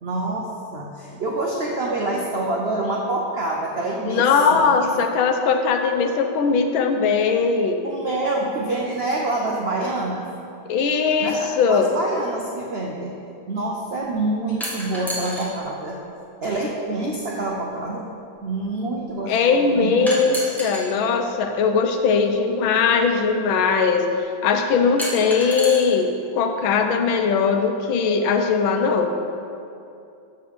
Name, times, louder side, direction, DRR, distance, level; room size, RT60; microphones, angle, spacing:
voice 1, 0.0-4.9 7.8-10.3 11.2-13.2 13.5-16.0 16.4-18.1 18.4-20.4, right 2 dB, 80° right, -1 dB, 0.5 m, -27 dB
voice 2, 4.1-7.8 10.7-11.9 19.3-29.1, left 5 dB, 85° left, 5 dB, 1.6 m, -20 dB
sound 1, 14.6-15.5 16.7-16.8 20.1-20.9 22.3-22.4 25.0-25.8, equal, ahead, 1.5 m, -29 dB
6.8 x 6.4 x 6.9 m, 2.7 s
omnidirectional pair, 2.2 m